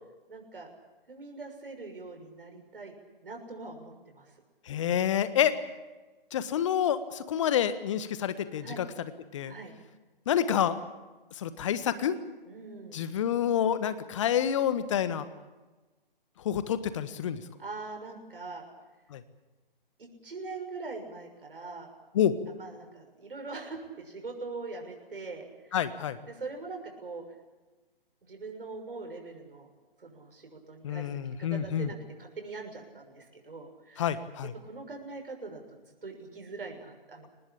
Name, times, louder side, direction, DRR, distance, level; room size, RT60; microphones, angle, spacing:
voice 1, 0.3-0.7 1.1-2.9 3.2-4.3 5.3-5.5 8.6-8.8 9.5-9.7 12.4-13.0 17.6-18.6 20.0-21.9 22.5-25.8 26.3-27.2 28.2-29.7 30.0-31.1 31.4-34.0 34.6-35.6 36.0-37.3, right 3 dB, 70° right, 3 dB, 6.5 m, -42 dB
voice 2, 4.7-5.6 6.3-8.8 9.3-9.5 10.3-10.8 11.4-12.2 12.9-15.2 16.4-17.4 19.1-19.2 22.1-22.3 25.7-26.2 30.8-31.9 34.0-34.5, left 9 dB, 30° left, 13 dB, 1.5 m, -28 dB
23.5 x 19.5 x 8.7 m, 1.2 s
figure-of-eight pair, 145°, 29 cm